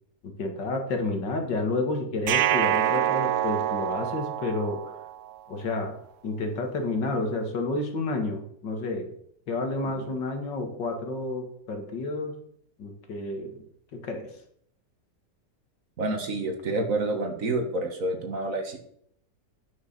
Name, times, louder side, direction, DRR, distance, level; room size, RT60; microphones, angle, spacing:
voice 1, 0.2-5.0 5.5-5.9 6.2-9.1 9.5-12.3 12.8-13.6 13.9-14.3, left 2 dB, 85° left, 4 dB, 2.5 m, -30 dB
sound 1, 2.3-5.3, right 11 dB, 70° right, 0.7 m, -26 dB
voice 2, 16.0-18.8, right 2 dB, 50° right, 5 dB, 1.8 m, -28 dB
9.8 x 6.4 x 6.8 m, 0.67 s
omnidirectional pair, 1.9 m